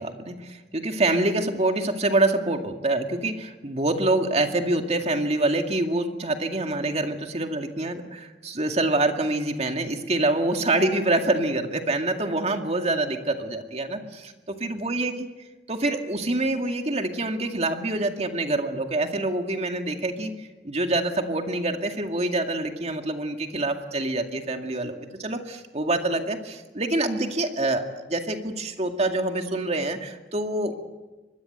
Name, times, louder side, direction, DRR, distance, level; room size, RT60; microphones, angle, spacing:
voice 1, 0.0-14.3 14.6-15.1 15.7-30.7, right 2 dB, 35° right, 5 dB, 2.2 m, -26 dB
25.0 x 21.5 x 8.1 m, 1.2 s
head